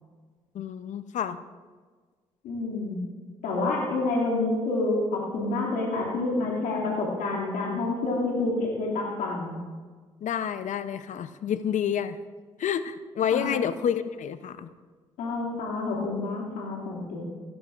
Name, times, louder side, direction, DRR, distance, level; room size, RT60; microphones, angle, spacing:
voice 1, 0.5-1.4 10.2-12.2 12.6-14.7, left 8 dB, 60° left, 13 dB, 0.6 m, -29 dB
voice 2, 2.4-3.0 3.4-9.6 13.3-13.5 15.2-17.2, left 2 dB, 75° left, -3 dB, 2.4 m, -28 dB
16.5 x 14.0 x 2.5 m, 1.5 s
hypercardioid pair, 50°, 14 cm